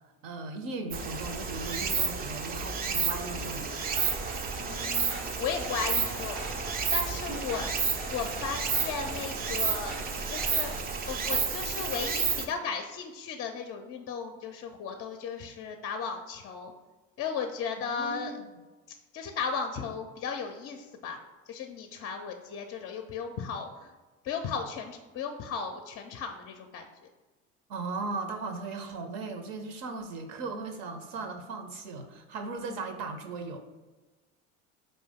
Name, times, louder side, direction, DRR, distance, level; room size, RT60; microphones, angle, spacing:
voice 1, 0.2-3.8 17.9-18.5 27.7-33.6, right 3 dB, 65° right, 7 dB, 0.6 m, -37 dB
Stream, 0.9-12.5, right 5 dB, 25° right, 0.4 m, -31 dB
sound 1, 3.8-10.8, right 2 dB, 85° right, 1.0 m, -42 dB
voice 2, 4.6-5.1 5.4-6.5 6.9-7.7 8.1-10.0 10.3-10.7 11.1-16.7 17.2-18.3 19.1-21.2 21.5-23.9 24.2-26.8, left 6 dB, 35° left, 5 dB, 0.4 m, -35 dB
4.5 x 2.6 x 3.4 m, 1.2 s
hypercardioid pair, 70°, 39 cm